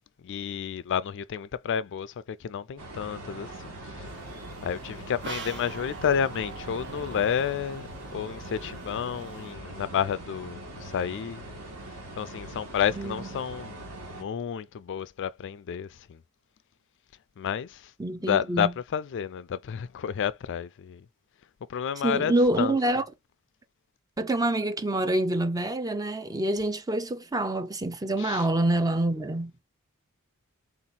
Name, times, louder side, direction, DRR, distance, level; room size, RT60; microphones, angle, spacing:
voice 1, 0.2-4.1 4.6-11.4 12.2-13.8 14.1-16.2 17.4-17.9 18.2-21.1 21.7-22.8 28.2-28.5, left 8 dB, 55° left, 0.4 m, -30 dB
sound 1, 2.8-14.2, right 1 dB, 75° right, 1.8 m, -42 dB
sound 2, 4.1-9.5, right 4 dB, 55° right, 0.8 m, -44 dB
voice 2, 12.9-13.3 18.0-18.7 22.0-23.0 24.2-29.5, right 1 dB, 15° right, 0.5 m, -26 dB
3.9 x 2.9 x 4.0 m
head